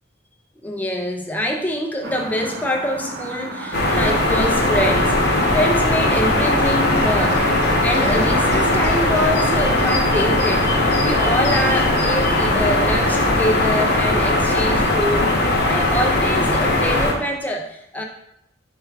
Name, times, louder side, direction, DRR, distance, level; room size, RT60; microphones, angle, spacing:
voice 1, 0.6-5.2 5.5-7.5 7.8-15.3 15.7-18.0, equal, 10° left, 2 dB, 0.4 m, -25 dB
sound 1, 2.0-8.9, right 2 dB, 55° right, 0.5 m, -31 dB
sound 2, 3.7-17.1, left 1 dB, 50° left, 0.7 m, -19 dB
4.6 x 2.3 x 4.6 m, 0.78 s
head